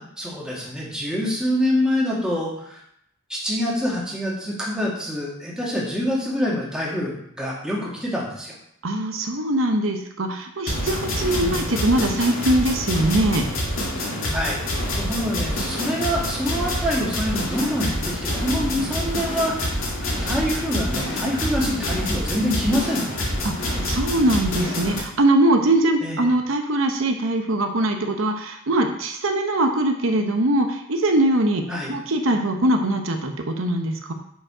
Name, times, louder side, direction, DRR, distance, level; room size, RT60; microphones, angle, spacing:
voice 1, 0.0-2.8 3.3-8.5 11.3-11.7 14.3-14.6 14.9-19.5 20.0-23.2 26.0-26.2 31.7-31.9, equal, 5° right, -4 dB, 1.8 m, -26 dB
voice 2, 8.8-13.5 23.4-23.5 23.8-34.1, right 1 dB, 75° right, 4 dB, 0.8 m, -22 dB
sound 1, 10.7-25.0, left 1 dB, 90° left, 2.1 m, -27 dB
7.0 x 5.1 x 4.9 m, 0.72 s
head